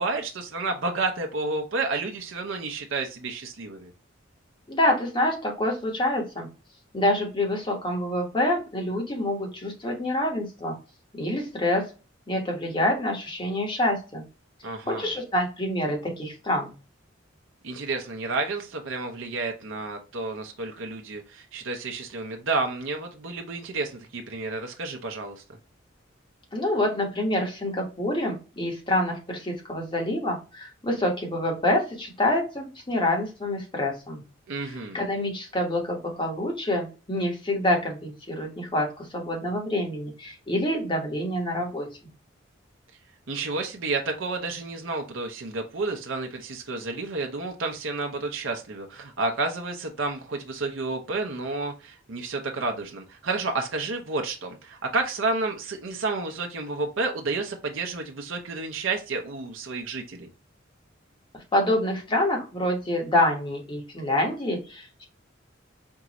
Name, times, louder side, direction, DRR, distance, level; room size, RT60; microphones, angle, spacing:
voice 1, 0.0-3.9 14.6-15.1 17.6-25.4 34.5-35.0 43.3-60.3, right 3 dB, 70° right, 0.7 m, -30 dB
voice 2, 4.7-6.5 6.9-10.7 11.2-11.9 12.3-14.2 14.9-16.7 26.5-34.2 34.6-41.9 61.5-65.0, left 1 dB, 25° left, 1.3 m, -26 dB
4.5 x 2.5 x 3.0 m
head